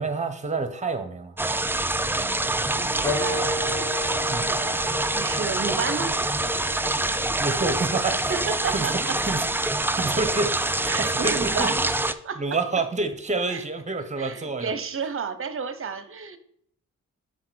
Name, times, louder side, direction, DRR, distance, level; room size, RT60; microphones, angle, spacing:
voice 1, 0.0-1.3 4.3-4.5 7.3-8.3 8.7-9.4 10.0-11.2 11.6-11.7 12.4-14.7, right 3 dB, 25° right, 9 dB, 1.1 m, -28 dB
sound 1, 1.4-12.1, right 2 dB, 5° right, 0.4 m, -26 dB
voice 2, 2.2-3.6 5.1-6.1 8.1-9.2 10.0-10.1 10.8-11.8 12.2-12.6 13.5-13.6 14.2-16.4, right 5 dB, 45° right, 12 dB, 0.8 m, -32 dB
Wind instrument woodwind instrument, 3.0-8.1, left 1 dB, 10° left, 1.3 m, -34 dB
5.6 x 4.3 x 6.3 m, 0.66 s
cardioid pair, 60°, 31 cm